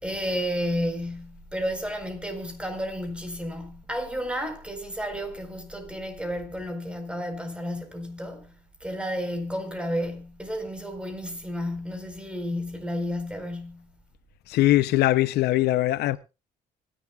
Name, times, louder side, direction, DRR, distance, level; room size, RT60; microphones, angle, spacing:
voice 1, 0.0-8.5 8.8-13.9, equal, 5° right, 4.2 m, -32 dB
voice 2, 14.5-16.2, left 15 dB, 75° left, 0.6 m, -21 dB
25.0 x 11.0 x 2.3 m
cardioid pair, 110°, 17 cm